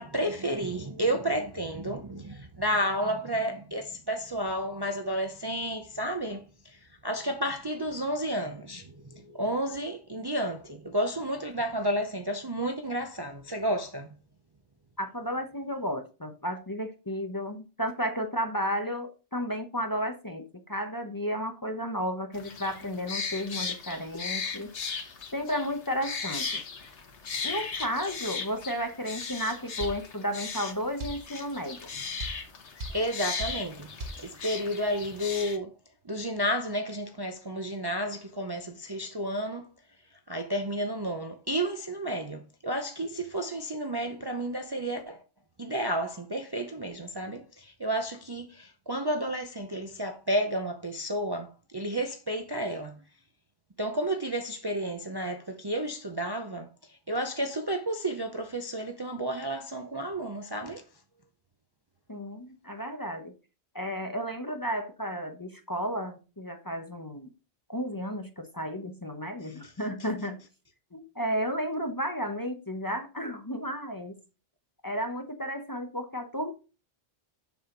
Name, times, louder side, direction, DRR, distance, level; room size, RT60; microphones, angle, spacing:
voice 1, 0.0-14.1 32.9-35.7 36.0-39.7 40.3-45.2 45.6-53.0 53.8-60.8 69.4-69.7, right 1 dB, 25° right, 0.6 m, -31 dB
voice 2, 15.0-24.7 25.3-26.6 27.4-31.8 62.1-63.3 63.7-67.3 67.7-70.4 70.9-74.2 74.8-76.5, equal, 20° left, 0.8 m, -33 dB
sound 1, 22.3-35.6, left 5 dB, 80° left, 1.4 m, -37 dB
sound 2, 29.8-30.0 31.0-31.2 32.2-32.4 32.8-33.0 33.4-33.6 34.0-34.2, right 1 dB, 75° right, 1.3 m, -36 dB
7.0 x 6.3 x 3.8 m
omnidirectional pair, 1.1 m